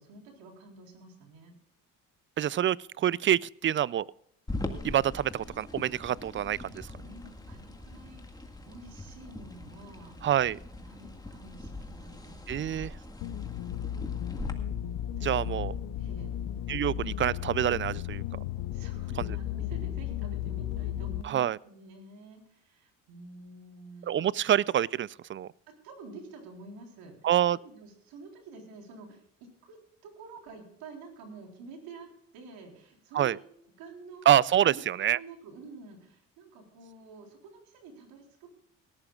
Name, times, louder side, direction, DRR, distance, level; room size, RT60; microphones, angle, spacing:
voice 1, 0.0-1.5 7.0-10.2 10.8-12.8 13.6-14.1 15.2-15.6 16.0-16.3 18.7-24.4 25.7-33.5 33.8-34.3 34.6-38.5, right 3 dB, 85° right, 2 dB, 4.0 m, -49 dB
voice 2, 2.4-4.1 4.8-6.9 10.2-10.6 12.5-12.9 15.2-15.7 16.7-18.2 21.2-21.6 24.1-25.5 27.2-27.6 33.1-33.4 34.3-35.2, right 11 dB, 35° right, 23 dB, 0.4 m, -26 dB
sound 1, 4.5-14.5, left 2 dB, 10° left, 1.9 m, -42 dB
sound 2, 13.2-21.2, left 11 dB, 80° left, 0.8 m, -34 dB
18.0 x 14.0 x 2.4 m, 0.71 s
supercardioid pair, 85°, 35 cm